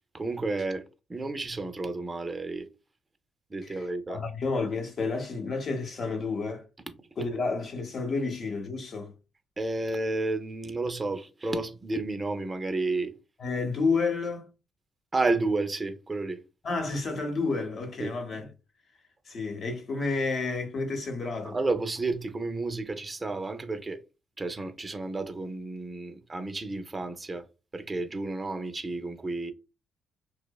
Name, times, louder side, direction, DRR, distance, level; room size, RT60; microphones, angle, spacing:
voice 1, 0.1-0.8 1.1-2.7 3.5-4.2 9.6-13.1 15.1-16.4 18.0-18.1 21.4-24.0 24.4-27.5 27.7-29.5, right 3 dB, 25° right, 0.4 m, -31 dB
voice 2, 3.6-6.6 7.2-9.1 13.4-14.5 16.6-18.5 19.3-21.6, left 4 dB, 50° left, 0.7 m, -30 dB
2.7 x 2.1 x 2.2 m
cardioid pair, 90°, 0 cm